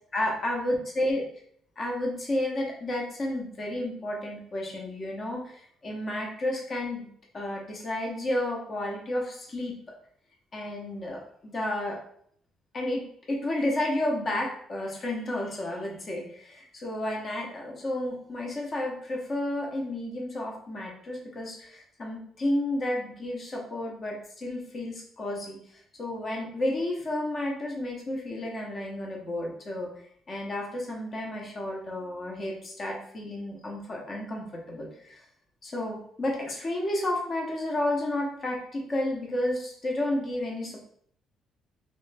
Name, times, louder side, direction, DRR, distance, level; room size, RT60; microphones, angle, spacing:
voice 1, 0.1-1.2 1.8-9.8 10.5-12.0 12.7-35.2 35.6-40.8, left 1 dB, 35° left, -1 dB, 0.8 m, -31 dB
3.1 x 3.0 x 3.3 m, 0.64 s
cardioid pair, 145°, 0 cm